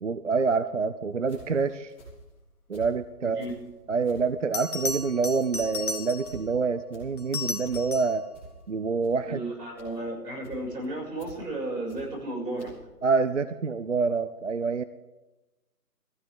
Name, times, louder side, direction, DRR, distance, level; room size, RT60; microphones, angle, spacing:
voice 1, 0.0-1.9 2.7-3.5 3.9-8.3 8.7-9.4 13.0-14.8, right 4 dB, 50° right, 13 dB, 0.5 m, -27 dB
sound 1, 1.3-3.0 3.3-12.3 12.6-12.7, right 2 dB, 5° left, 3.3 m, -49 dB
voice 2, 3.2-3.5 9.3-12.7, right 1 dB, 85° right, -1 dB, 6.4 m, -34 dB
Bell, 3.9-4.0 4.5-6.5 7.2-8.2 10.9-11.2, left 3 dB, 65° left, 1.6 m, -34 dB
19.0 x 15.0 x 3.6 m, 1.1 s
hypercardioid pair, 170°, 47 cm